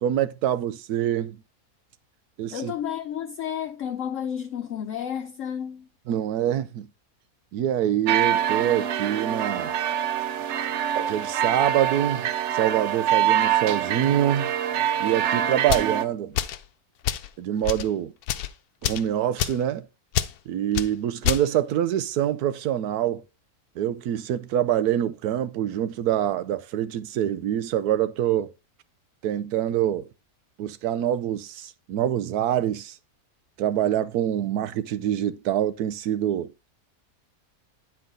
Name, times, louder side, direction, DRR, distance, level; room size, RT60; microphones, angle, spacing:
voice 1, 0.0-1.4 2.4-2.7 6.1-6.9 7.5-9.7 11.1-14.5 15.0-16.4 17.4-18.1 18.8-19.9 20.5-23.2 23.8-28.5 29.2-30.1 30.6-33.0 33.6-36.5, right 11 dB, 90° right, 1.2 m, -25 dB
voice 2, 2.5-5.9, left 9 dB, 65° left, 0.9 m, -31 dB
sound 1, 8.1-16.0, right 10 dB, 65° right, 0.8 m, -25 dB
sound 2, 15.6-15.9 16.3-16.6 17.0-17.3 17.6-17.9 18.2-18.5 18.8-19.1 19.4-19.6 20.1-20.3 20.7-20.9 21.2-21.4, left 11 dB, 85° left, 1.1 m, -26 dB
9.7 x 4.6 x 3.8 m
omnidirectional pair, 1.6 m